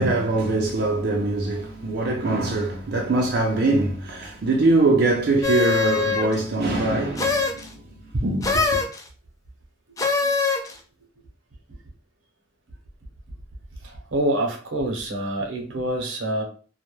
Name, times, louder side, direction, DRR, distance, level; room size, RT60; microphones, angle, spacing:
voice 1, 0.0-7.9 8.2-8.8, right 2 dB, 55° right, 0.4 m, -23 dB
sound 1, 5.4-6.4 7.2-7.7 8.4-9.0 10.0-10.7, left 4 dB, 20° left, 0.3 m, -22 dB
voice 2, 13.8-16.4, right 1 dB, 85° right, 0.7 m, -26 dB
2.2 x 2.0 x 3.0 m
head